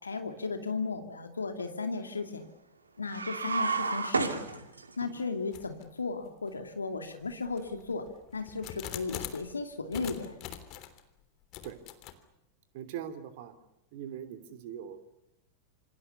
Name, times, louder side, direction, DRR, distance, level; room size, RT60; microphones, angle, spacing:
voice 1, 0.0-2.5 3.0-4.6 5.0-8.1 8.3-10.4, left 4 dB, 75° left, 6 dB, 2.5 m, -35 dB
sound 1, 3.1-5.1, right 4 dB, 75° right, 2.7 m, -31 dB
sound 2, 5.5-5.9 6.5-6.6 7.3-9.5 9.9-11.0 11.5-12.1, left 12 dB, 40° left, 3.3 m, -43 dB
voice 2, 12.7-13.5 13.9-15.0, right 9 dB, 50° right, 10 dB, 3.1 m, -41 dB
27.5 x 27.5 x 7.0 m, 0.91 s
figure-of-eight pair, 90°, 0 cm